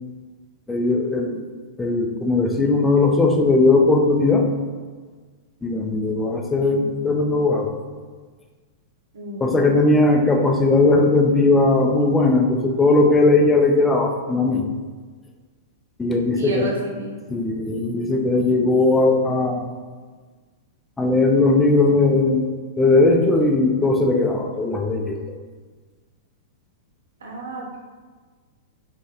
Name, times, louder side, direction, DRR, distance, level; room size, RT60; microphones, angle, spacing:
voice 1, 0.7-1.4 1.8-4.5 5.6-7.7 9.4-14.7 16.0-16.7 17.3-19.7 21.0-22.5 22.8-25.2, left 2 dB, 10° left, 2 dB, 0.4 m, -18 dB
voice 2, 9.1-9.7 16.4-17.2 27.2-27.8, right 2 dB, 80° right, -1 dB, 0.6 m, -31 dB
2.6 x 2.1 x 3.6 m, 1.4 s
hypercardioid pair, 110°, 0 cm